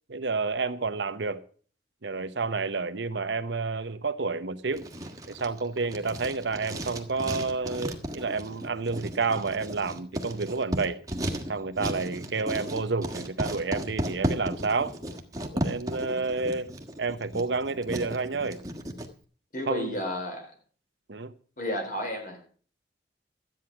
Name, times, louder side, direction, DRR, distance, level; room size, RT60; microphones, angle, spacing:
voice 1, 0.1-1.4 2.0-4.9 5.3-11.0 11.5-14.9 15.5-16.7 17.0-18.6 19.7-20.0 21.1-21.3, right 4 dB, 75° right, 0.9 m, -30 dB
Writing, 4.7-19.1, right 1 dB, 20° right, 1.6 m, -35 dB
voice 2, 19.5-20.5 21.6-22.5, left 1 dB, 50° left, 4.1 m, -32 dB
13.5 x 9.2 x 6.0 m
head